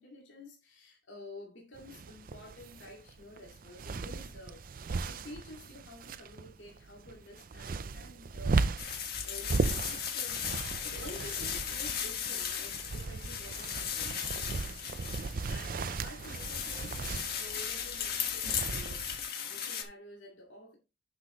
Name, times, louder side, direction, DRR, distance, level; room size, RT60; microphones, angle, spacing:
voice 1, 0.0-8.9 9.2-14.3 15.2-17.1 17.4-20.8, left 2 dB, 80° left, 2.4 m, -50 dB
sound 1, 1.7-19.3, right 4 dB, 50° right, 0.5 m, -37 dB
sound 2, 8.8-19.8, left 8 dB, 55° left, 1.5 m, -37 dB
sound 3, 9.2-14.8, right 1 dB, 90° right, 1.1 m, -54 dB
10.0 x 6.4 x 3.1 m
head